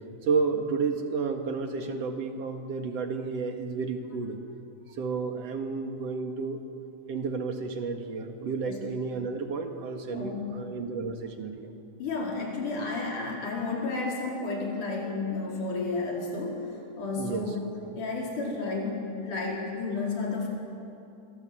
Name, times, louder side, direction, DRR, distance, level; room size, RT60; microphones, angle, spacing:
voice 1, 0.2-4.4 5.0-6.6 7.1-11.7 17.2-17.5, right 4 dB, 55° right, 4 dB, 2.8 m, -31 dB
voice 2, 10.1-10.5 12.0-17.6 18.0-20.5, left 3 dB, 80° left, -2 dB, 5.8 m, -32 dB
27.0 x 23.5 x 7.7 m, 2.6 s
omnidirectional pair, 3.5 m